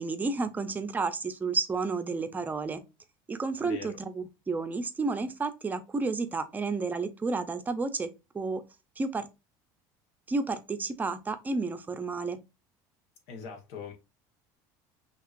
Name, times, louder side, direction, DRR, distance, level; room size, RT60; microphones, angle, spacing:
voice 1, 0.0-2.8 3.3-8.1 8.3-8.6 9.0-9.3 10.3-12.4, right 3 dB, 20° right, 0.6 m, -31 dB
voice 2, 3.6-4.0 13.3-13.9, left 6 dB, 75° left, 1.5 m, -41 dB
5.6 x 3.0 x 2.5 m
cardioid pair, 130°, 10 cm